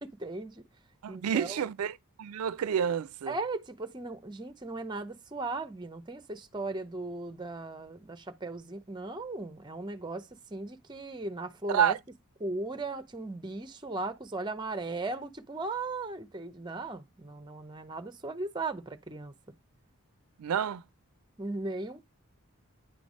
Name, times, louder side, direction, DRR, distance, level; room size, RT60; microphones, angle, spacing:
voice 1, 0.0-0.6 1.1-1.6 3.3-12.0 12.4-19.3 21.4-22.1, right 2 dB, 20° right, 0.6 m, -37 dB
voice 2, 1.0-1.9 2.2-3.3 11.7-12.0 20.4-20.8, right 8 dB, 80° right, 0.4 m, -29 dB
9.3 x 3.3 x 5.2 m
head